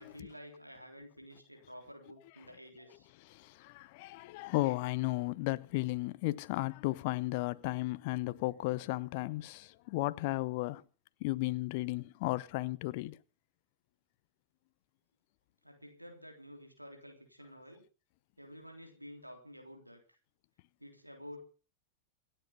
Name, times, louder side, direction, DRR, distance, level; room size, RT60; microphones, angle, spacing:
voice 1, 0.0-3.1 15.6-17.8 18.4-20.2 20.8-21.4, equal, 90° right, 3.4 m, -51 dB
voice 2, 3.3-10.8 11.2-13.2, left 20 dB, 50° left, 0.7 m, -34 dB
27.0 x 9.1 x 5.4 m
figure-of-eight pair, 90°, 0 cm